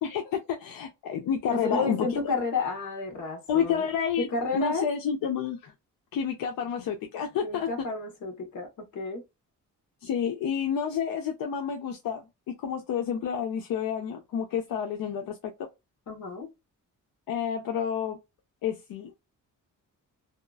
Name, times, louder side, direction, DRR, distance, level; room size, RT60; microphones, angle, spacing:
voice 1, 0.0-2.1 3.5-4.3 4.5-5.7 6.1-7.7 10.0-12.3 12.6-15.4 17.3-18.2 18.6-19.2, left 8 dB, 85° left, 0.6 m, -29 dB
voice 2, 1.5-3.8 4.2-4.9 7.4-9.2 16.1-16.5, left 4 dB, 60° left, 1.2 m, -31 dB
2.9 x 2.3 x 2.3 m
cardioid pair, 125°, 33 cm